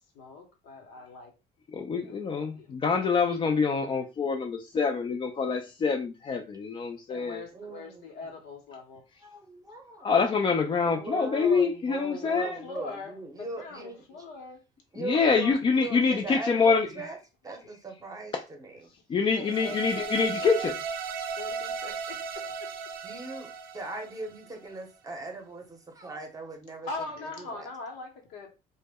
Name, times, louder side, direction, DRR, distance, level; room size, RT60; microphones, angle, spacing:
voice 1, 0.1-1.3 1.9-2.1 2.5-3.4 7.1-9.0 12.1-14.6 19.3-20.6 21.4-22.7 26.9-28.5, left 4 dB, 85° left, 0.8 m, -42 dB
voice 2, 1.7-7.4 10.0-12.6 15.0-16.9 19.1-20.7, left 5 dB, 30° left, 0.3 m, -26 dB
voice 3, 7.5-8.0 9.2-10.1 10.8-14.2 14.9-17.2 17.4-18.9 23.0-27.7, right 3 dB, 20° right, 0.7 m, -39 dB
sound 1, 19.4-24.7, right 5 dB, 60° right, 0.5 m, -36 dB
2.1 x 2.0 x 3.4 m
cardioid pair, 110°, 17 cm